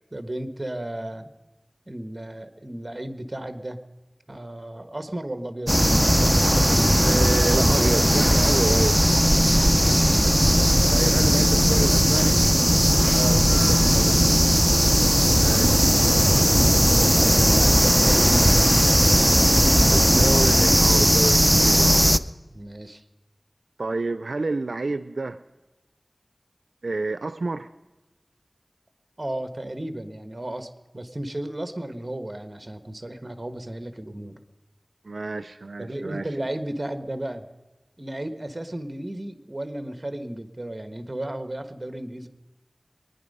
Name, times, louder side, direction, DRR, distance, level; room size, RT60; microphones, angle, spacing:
voice 1, 0.1-1.3 1.9-3.8 4.3-5.8 13.1-14.6 17.0-18.7 22.4-23.0 29.2-34.4 35.8-37.5 38.0-42.3, right 1 dB, 35° right, 9 dB, 1.2 m, -34 dB
sound 1, 5.7-22.2, equal, 5° right, 0.5 m, -18 dB
voice 2, 7.0-9.0 10.9-12.4 15.4-15.9 19.9-22.1 23.8-25.4 26.8-27.7 35.1-36.3, right 3 dB, 90° right, 14 dB, 0.4 m, -29 dB
23.5 x 10.0 x 5.4 m, 1.1 s
wide cardioid pair, 60°, 0 cm